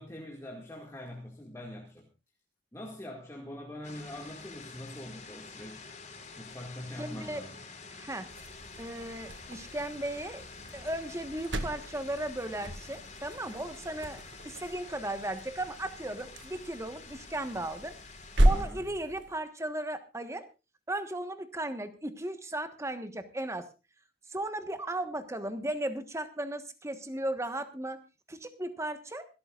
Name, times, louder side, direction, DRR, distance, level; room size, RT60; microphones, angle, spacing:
voice 1, 0.0-2.1 2.7-5.9 6.4-7.6 18.5-18.8, left 1 dB, 15° left, 2.1 m, -43 dB
sound 1, 3.8-18.6, left 4 dB, 40° left, 4.5 m, -48 dB
voice 2, 7.0-7.4 7.9-8.3 8.8-10.4 10.7-18.0 18.4-20.5 20.9-23.7 24.3-28.0 28.3-29.3, right 1 dB, 15° right, 1.3 m, -36 dB
sound 2, 8.3-19.4, right 1 dB, 85° right, 1.8 m, -34 dB
26.0 x 13.0 x 2.5 m
head